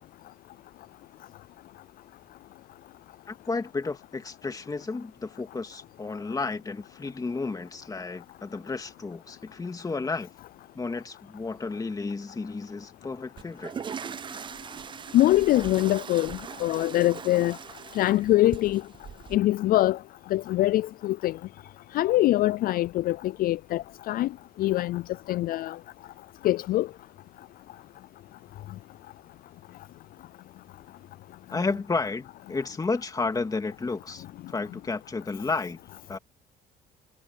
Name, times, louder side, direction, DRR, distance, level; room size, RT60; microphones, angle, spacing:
voice 1, 3.3-10.3 10.7-13.7 31.5-35.8 36.1-36.2, left 3 dB, 20° left, 2.4 m, -32 dB
sound 1, 13.4-19.4, right 7 dB, 30° right, 0.5 m, -40 dB
voice 2, 15.1-17.6 17.9-18.8 19.3-20.0 20.3-21.4 21.9-24.3 24.6-25.0 25.3-25.8 26.4-26.9, left 15 dB, 60° left, 0.4 m, -23 dB
cardioid pair, 110°, 17 cm